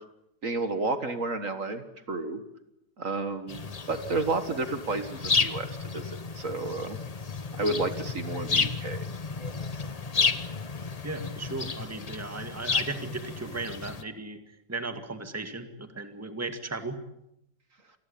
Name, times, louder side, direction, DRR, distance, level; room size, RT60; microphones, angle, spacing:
voice 1, 0.4-2.4 3.0-7.0 7.6-9.0, right 3 dB, 50° right, 9 dB, 2.0 m, -31 dB
sound 1, 3.5-14.0, left 4 dB, 30° left, 0.9 m, -32 dB
voice 2, 11.0-14.4 14.7-17.0, right 3 dB, 10° right, 8 dB, 2.0 m, -36 dB
27.5 x 20.5 x 8.6 m, 0.81 s
omnidirectional pair, 1.7 m